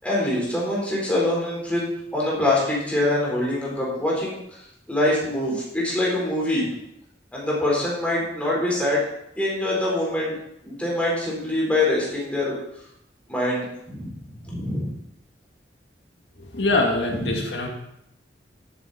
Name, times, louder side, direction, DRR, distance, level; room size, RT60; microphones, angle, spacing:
voice 1, 0.0-4.4 4.9-6.7 7.3-9.0 9.4-10.4 10.6-12.5 13.3-14.1 14.4-14.9 17.1-17.4, left 1 dB, 10° left, -5 dB, 4.5 m, -24 dB
voice 2, 16.5-17.7, left 2 dB, 90° left, 1 dB, 2.0 m, -23 dB
12.5 x 8.7 x 4.3 m, 0.78 s
head